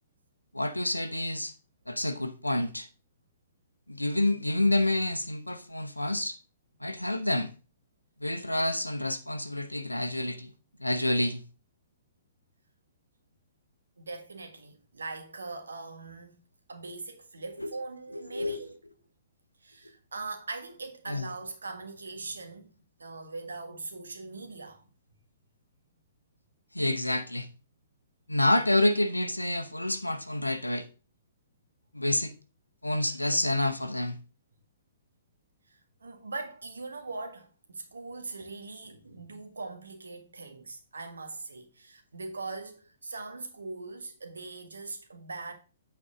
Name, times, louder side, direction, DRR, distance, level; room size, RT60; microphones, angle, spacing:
voice 1, 0.5-1.5 1.9-2.9 3.9-6.4 6.8-7.5 8.2-10.5 10.8-11.4 17.6-17.7 18.1-18.6 21.1-21.3 26.7-27.5 28.3-30.9 31.9-32.3 32.8-34.2, left 1 dB, 85° left, 0.8 m, -28 dB
voice 2, 14.0-16.4 16.7-18.7 19.6-22.7 23.0-24.8 35.7-45.5, right 3 dB, 70° right, 1.6 m, -41 dB
8.6 x 4.5 x 5.1 m
figure-of-eight pair, 115°, 0 cm